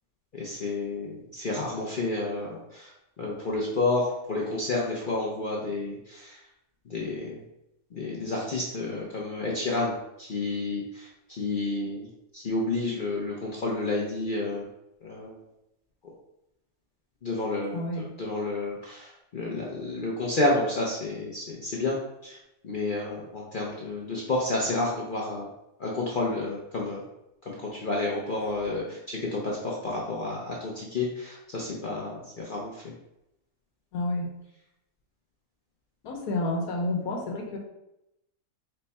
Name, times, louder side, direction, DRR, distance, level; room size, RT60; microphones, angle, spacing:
voice 1, 0.3-2.9 3.2-6.4 6.9-7.4 7.9-12.1 12.3-14.7 15.0-15.4 17.2-22.0 22.2-22.4 22.6-25.5 25.8-27.0 27.4-32.9, left 2 dB, 55° left, -3 dB, 0.5 m, -30 dB
voice 2, 17.7-18.0 33.9-34.3 36.0-37.6, left 2 dB, 75° left, 0 dB, 1.3 m, -29 dB
4.5 x 2.2 x 4.0 m, 0.85 s
omnidirectional pair, 1.7 m